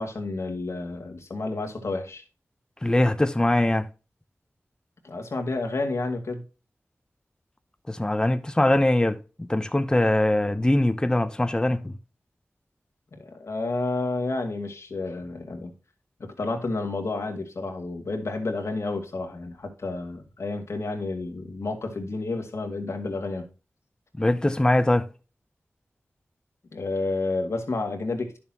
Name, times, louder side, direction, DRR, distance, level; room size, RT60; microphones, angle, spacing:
voice 1, 0.0-2.2 5.0-6.4 13.2-15.7 16.2-23.5 26.7-28.4, left 3 dB, 75° left, 1.9 m, -30 dB
voice 2, 2.8-3.9 7.9-11.9 24.2-25.1, left 1 dB, 15° left, 0.6 m, -22 dB
10.5 x 6.9 x 2.8 m
wide cardioid pair, 55°, 5 cm